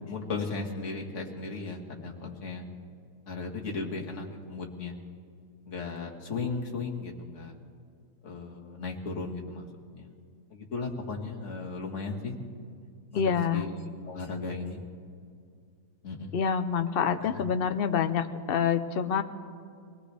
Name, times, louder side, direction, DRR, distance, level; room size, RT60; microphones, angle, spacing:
voice 1, 0.1-2.7 3.3-5.0 5.7-7.5 8.2-9.7 9.9-10.1 10.5-12.4 13.1-13.2 13.5-13.8 14.1-14.9 16.0-16.4 17.2-17.3, left 4 dB, 45° left, 0 dB, 1.9 m, -36 dB
voice 2, 13.1-13.6 16.3-19.2, left 7 dB, 70° left, 10 dB, 0.5 m, -27 dB
23.5 x 18.0 x 3.4 m, 2.2 s
omnidirectional pair, 1.8 m